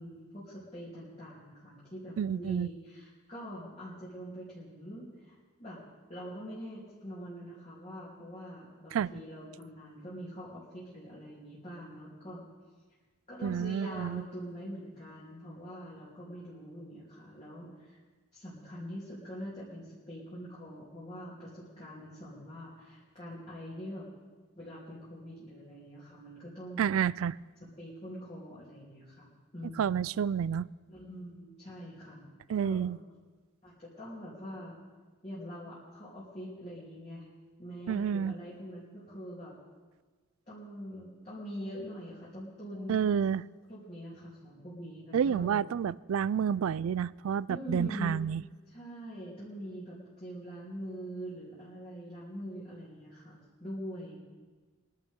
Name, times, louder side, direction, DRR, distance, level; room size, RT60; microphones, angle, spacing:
voice 1, 0.0-5.8 6.1-12.4 13.3-18.0 18.3-24.1 24.5-26.9 27.8-29.9 30.9-32.9 33.6-34.7 35.2-37.3 37.6-39.5 40.5-43.1 43.7-45.7 46.4-46.5 47.5-48.2 48.7-54.2, equal, 30° left, -9 dB, 3.2 m, -44 dB
voice 2, 2.2-2.7 8.9-9.1 13.4-14.2 26.8-27.4 29.8-30.7 32.5-33.0 37.9-38.3 42.9-43.4 45.1-48.4, right 8 dB, 80° right, 21 dB, 0.3 m, -29 dB
22.5 x 11.5 x 3.7 m, 1.4 s
head